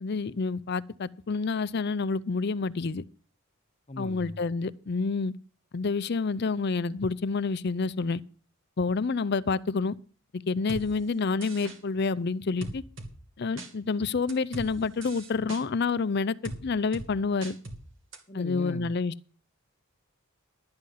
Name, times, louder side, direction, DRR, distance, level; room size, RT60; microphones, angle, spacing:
voice 1, 0.0-3.0 4.0-5.3 5.7-8.2 8.8-10.0 10.3-12.8 13.4-17.6 18.3-19.3, left 4 dB, 50° left, 0.5 m, -28 dB
voice 2, 3.9-4.4 18.3-18.9, left 1 dB, 30° left, 0.9 m, -39 dB
sound 1, 10.7-10.8 11.4-11.8 12.6-13.1 13.6-13.7 14.3-14.7 15.0-15.6 16.4-16.6 16.9-17.1 17.4-17.8 18.1-18.2, right 2 dB, 60° right, 2.7 m, -39 dB
12.5 x 9.2 x 5.6 m
head